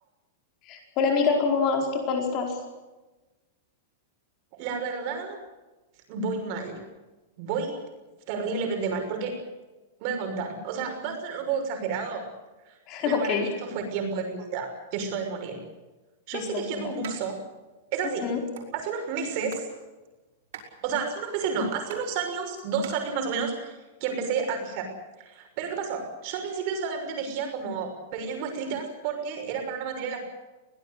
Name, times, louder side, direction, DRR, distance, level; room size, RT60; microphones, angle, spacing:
voice 1, 0.7-2.5 12.9-13.5 16.3-16.5 16.7-16.9 18.2-18.4, left 5 dB, 25° left, 2 dB, 4.8 m, -25 dB
voice 2, 4.5-5.4 6.1-6.8 7.4-7.8 8.3-9.4 10.0-12.3 12.7-12.8 13.1-15.6 16.3-17.4 17.9-18.3 18.7-19.6 20.8-23.7 24.0-24.9 25.2-30.2, right 5 dB, 35° right, 4 dB, 5.9 m, -31 dB
sound 1, 17.0-17.2 17.5-17.6 17.9-18.7 19.2-19.7 20.0-22.9, right 8 dB, 60° right, 6.4 m, -43 dB
23.0 x 18.0 x 8.4 m, 1.1 s
supercardioid pair, 175°, 0 cm